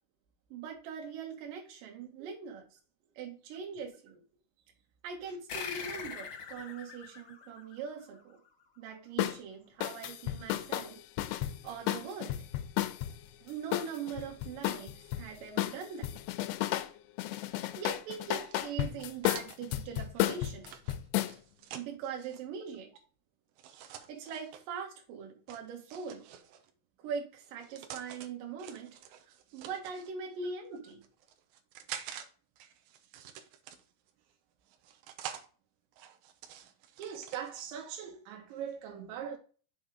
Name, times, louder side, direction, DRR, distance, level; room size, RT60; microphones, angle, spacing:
voice 1, 0.5-2.8 3.2-4.2 5.0-8.4 8.8-11.0 11.6-12.4 13.4-16.1 17.5-20.6 21.7-22.9 24.1-26.3 27.0-29.0 29.3-31.0, right 6 dB, 55° right, 3.1 m, -42 dB
sound 1, 5.5-8.5, left 6 dB, 60° left, 1.7 m, -43 dB
sound 2, 9.2-9.4 9.8-13.1 13.7-15.2 15.6-16.9 17.2-21.3, left 14 dB, 80° left, 2.5 m, -33 dB
sound 3, 18.3-22.4 23.6-24.6 25.5-26.7 27.4-28.3 28.6-30.1 30.8-32.3 32.6-34.1 34.7-35.5 35.9-37.6, right 9 dB, 75° right, 2.4 m, -48 dB
voice 2, 37.0-39.4, right 8 dB, 90° right, 3.6 m, -41 dB
7.2 x 4.3 x 5.0 m
omnidirectional pair, 5.1 m